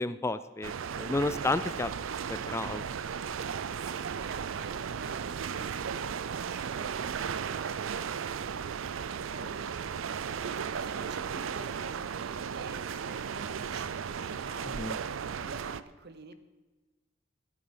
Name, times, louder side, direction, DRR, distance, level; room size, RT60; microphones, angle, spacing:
voice 1, 0.0-1.9 2.3-2.8 14.8-15.0, left 2 dB, 15° left, 14 dB, 0.3 m, -31 dB
sound 1, 0.6-15.8, right 7 dB, 85° right, 0.5 m, -35 dB
voice 2, 3.7-8.1 9.1-14.8 15.1-16.3, right 3 dB, 55° right, 10 dB, 1.0 m, -47 dB
12.0 x 10.5 x 5.5 m, 1.2 s
head